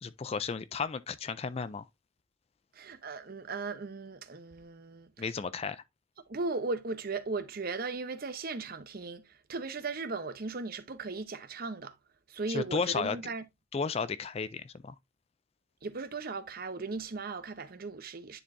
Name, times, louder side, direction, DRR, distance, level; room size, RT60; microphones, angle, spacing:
voice 1, 0.0-1.9 5.2-5.8 12.5-13.2 13.7-14.9, left 5 dB, 30° left, 0.3 m, -33 dB
voice 2, 2.7-5.2 6.3-11.9 12.3-13.4 15.8-18.4, right 3 dB, 45° right, 0.7 m, -37 dB
10.0 x 4.4 x 2.6 m
head